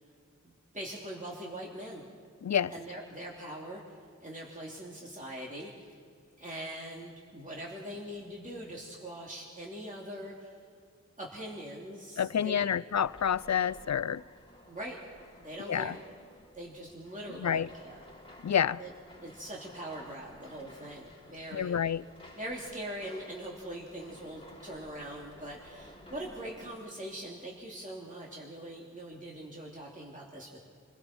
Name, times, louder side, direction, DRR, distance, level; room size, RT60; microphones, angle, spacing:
voice 1, 0.4-2.0 2.7-6.0 6.4-10.5 11.2-12.7 14.7-15.0 15.4-16.0 16.5-18.0 18.8-18.9 19.2-21.8 22.4-30.6, right 1 dB, 25° right, 2.8 m, -42 dB
voice 2, 2.4-2.7 12.2-14.2 15.6-16.0 17.3-17.7 18.4-18.8 21.5-22.0, left 8 dB, 65° left, 0.5 m, -29 dB
sound 1, 12.9-26.7, left 1 dB, 20° left, 4.8 m, -54 dB
30.0 x 21.0 x 4.4 m
wide cardioid pair, 65°, 30 cm